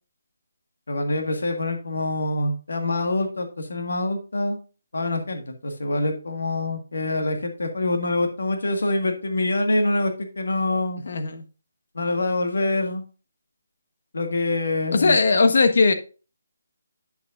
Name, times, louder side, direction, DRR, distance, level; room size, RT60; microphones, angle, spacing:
voice 1, 0.9-4.6 4.9-11.0 11.9-13.0 14.1-15.2, left 2 dB, 80° left, 1.7 m, -25 dB
voice 2, 11.0-11.4 14.9-15.9, left 4 dB, 55° left, 1.3 m, -18 dB
8.9 x 7.4 x 2.6 m
hypercardioid pair, 170°, 0 cm